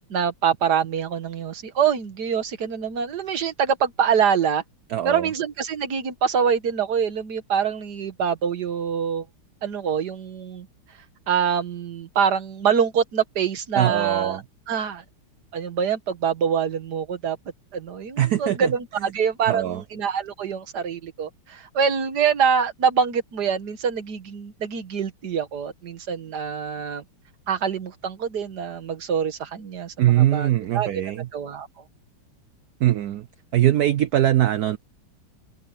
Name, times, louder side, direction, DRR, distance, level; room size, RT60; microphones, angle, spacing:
voice 1, 0.1-4.6 5.0-9.3 9.6-10.7 11.3-14.4 14.7-15.0 15.5-17.4 17.7-27.0 27.5-31.0 31.3-31.7, right 7 dB, 50° right, 1.9 m, -25 dB
voice 2, 4.9-5.3 13.7-14.4 18.2-18.7 19.5-19.8 30.0-31.3 32.8-33.3 33.5-34.8, right 13 dB, 85° right, 0.8 m, -21 dB
omnidirectional pair, 2.4 m